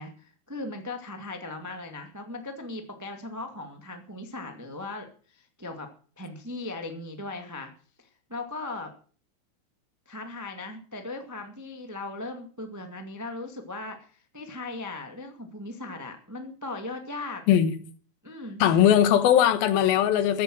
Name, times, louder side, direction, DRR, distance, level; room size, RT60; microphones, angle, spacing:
voice 1, 0.0-5.9 6.2-7.7 8.0-8.9 10.0-17.4 18.2-18.6, left 2 dB, 10° right, 0.7 m, -38 dB
voice 2, 18.6-20.4, left 10 dB, 85° left, 3.0 m, -20 dB
14.0 x 10.0 x 7.7 m
omnidirectional pair, 4.2 m